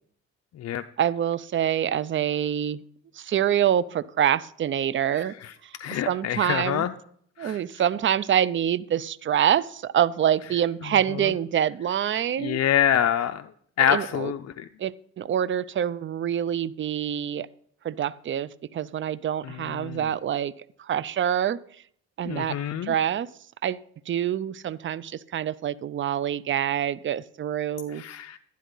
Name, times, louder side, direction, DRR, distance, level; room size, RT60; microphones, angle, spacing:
voice 1, 1.0-2.8 3.2-5.3 5.6-6.8 7.4-12.6 13.9-14.3 14.8-17.5 17.8-20.5 20.8-21.6 22.2-23.3 23.6-23.8 24.1-28.0, right 10 dB, 40° right, 18 dB, 0.5 m, -26 dB
voice 2, 5.1-5.5 5.8-6.9 7.4-7.6 11.2-11.3 12.4-13.5 13.8-14.7 19.4-20.0 22.2-23.0 27.9-28.4, left 9 dB, 55° left, 8 dB, 0.6 m, -26 dB
12.0 x 10.0 x 3.9 m, 0.62 s
cardioid pair, 90°, 30 cm